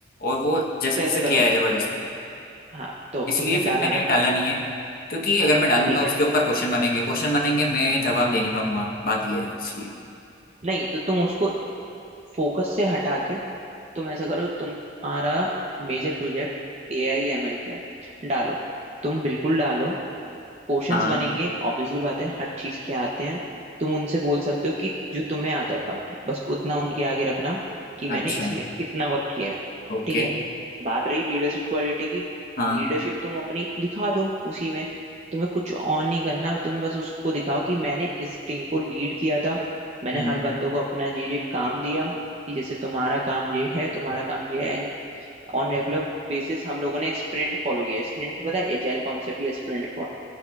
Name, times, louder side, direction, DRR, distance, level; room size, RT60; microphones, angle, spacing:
voice 1, 0.2-2.0 3.3-4.6 5.1-9.9 20.9-21.2 28.1-28.5 29.9-30.3 32.6-32.9 40.1-40.4, left 1 dB, 50° left, -1 dB, 1.0 m, -23 dB
voice 2, 1.0-1.4 2.7-4.0 5.9-6.1 10.6-11.5 12.4-13.4 13.9-15.5 15.8-16.5 16.9-17.8 18.2-18.6 19.0-20.0 20.7-23.4 23.8-27.6 28.0-29.6 30.1-30.3 30.8-32.3 32.7-34.9 35.3-39.6 40.0-42.1 42.5-44.9 45.5-50.0, right 1 dB, 35° right, -4 dB, 0.6 m, -27 dB
17.0 x 5.8 x 2.3 m, 2.7 s
head